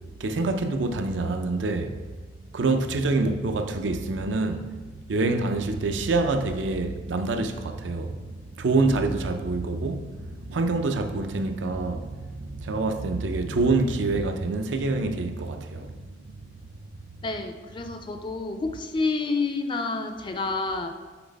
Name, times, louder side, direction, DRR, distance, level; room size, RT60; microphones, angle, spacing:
voice 1, 0.2-2.0 2.5-16.4, right 3 dB, 85° right, 0.5 m, -26 dB
voice 2, 17.2-20.9, left 3 dB, 25° left, 0.4 m, -29 dB
6.0 x 3.3 x 5.1 m
head